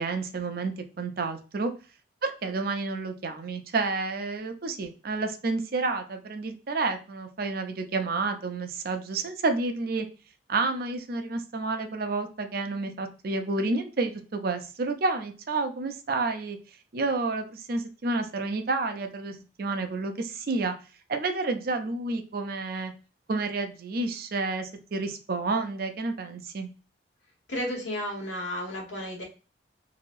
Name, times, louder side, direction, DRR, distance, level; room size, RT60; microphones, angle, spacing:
voice 1, 0.0-1.7 2.2-10.1 10.5-16.6 16.9-20.7 21.1-22.9 23.3-26.7, right 3 dB, 50° right, 7 dB, 0.5 m, -30 dB
voice 2, 27.5-29.2, left 1 dB, 80° left, 0 dB, 1.2 m, -33 dB
3.0 x 2.7 x 2.5 m, 0.34 s
head